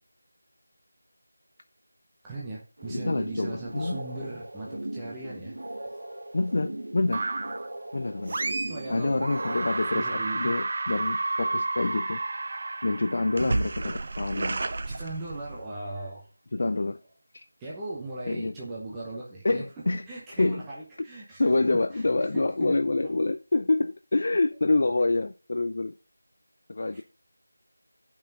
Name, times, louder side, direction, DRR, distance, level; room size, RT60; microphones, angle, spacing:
voice 1, 2.2-5.6 8.7-9.2 9.5-9.6 9.9-10.5 14.8-16.3 17.6-19.6 20.1-22.0 22.6-22.8 23.0-23.1 26.9-27.0, right 2 dB, 5° right, 0.8 m, -38 dB
sound 1, 2.8-10.1, right 1 dB, 75° right, 1.1 m, -39 dB
voice 2, 2.9-4.0 6.3-7.3 7.9-8.4 8.9-12.2 12.8-14.6 16.5-17.0 17.3-17.5 18.3-18.5 19.4-20.0 20.3-20.6 21.4-25.9 26.7-27.0, left 2 dB, 30° left, 0.4 m, -27 dB
sound 2, 7.1-7.7 8.3-8.9 9.2-15.7, right 3 dB, 25° right, 0.5 m, -31 dB
8.7 x 5.5 x 5.3 m
figure-of-eight pair, 180°, 0 cm